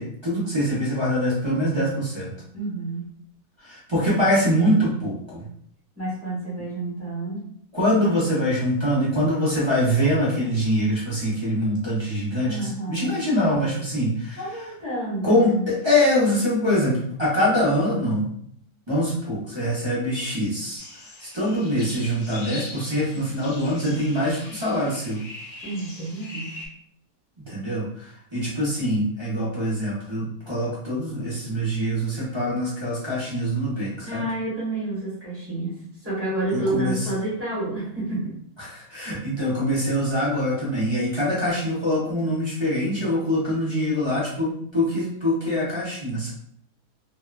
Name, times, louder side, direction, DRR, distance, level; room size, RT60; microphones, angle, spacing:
voice 1, 0.0-2.3 3.6-5.4 7.7-14.4 15.2-18.3 18.9-20.8 21.2-25.2 27.5-34.2 36.5-36.9 38.6-46.3, equal, 30° right, -9 dB, 0.5 m, -24 dB
voice 2, 2.5-3.1 6.0-7.4 12.5-13.2 14.3-15.7 25.6-26.6 34.0-38.3, right 2 dB, 10° right, -8 dB, 1.1 m, -29 dB
sound 1, 20.8-26.7, left 2 dB, 75° left, 0.4 m, -41 dB
2.8 x 2.2 x 2.3 m, 0.65 s
omnidirectional pair, 1.7 m